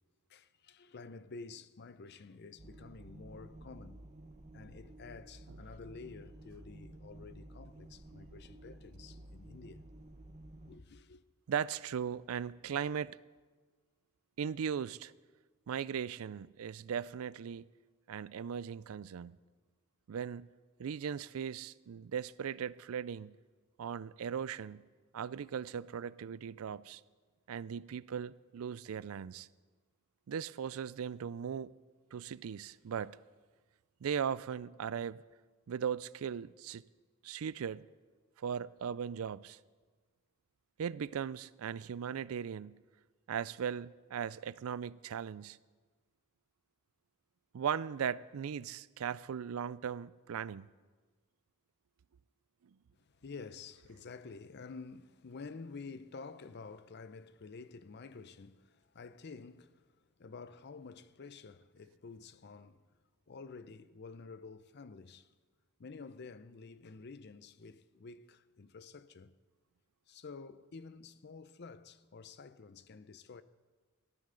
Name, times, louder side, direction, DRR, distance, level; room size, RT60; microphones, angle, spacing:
voice 1, 0.3-4.1 4.5-9.8 10.7-11.2 53.0-59.9 60.2-62.9 63.3-65.3 65.8-69.4 70.1-73.4, left 4 dB, 50° left, 0.6 m, -50 dB
sound 1, 2.6-10.8, right 1 dB, 30° right, 0.8 m, -53 dB
voice 2, 11.5-13.2 14.4-15.1 15.7-17.6 18.1-19.4 20.1-20.5 20.8-23.4 23.8-24.8 25.1-27.0 27.5-29.5 30.3-31.7 32.1-33.2 34.0-35.2 35.7-36.8 37.2-37.9 38.4-39.6 40.8-42.8 43.3-45.6 47.5-50.7, right 7 dB, 80° right, 0.4 m, -38 dB
18.5 x 13.5 x 3.8 m
head